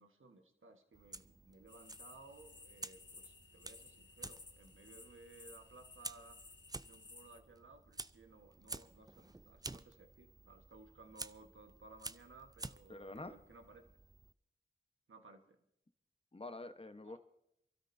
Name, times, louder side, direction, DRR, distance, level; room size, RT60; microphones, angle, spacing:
voice 1, 0.0-6.4 6.8-13.8 15.1-15.6 17.0-17.2, right 3 dB, 85° right, 5 dB, 1.4 m, -59 dB
Fire, 0.9-14.3, right 2 dB, 20° right, 0.5 m, -52 dB
sound 1, 1.7-7.4, left 3 dB, 65° left, 1.4 m, -58 dB
voice 2, 12.9-13.3 16.3-17.2, left 2 dB, 30° left, 9 dB, 1.1 m, -47 dB
28.0 x 13.0 x 2.7 m, 0.77 s
wide cardioid pair, 50°, 20 cm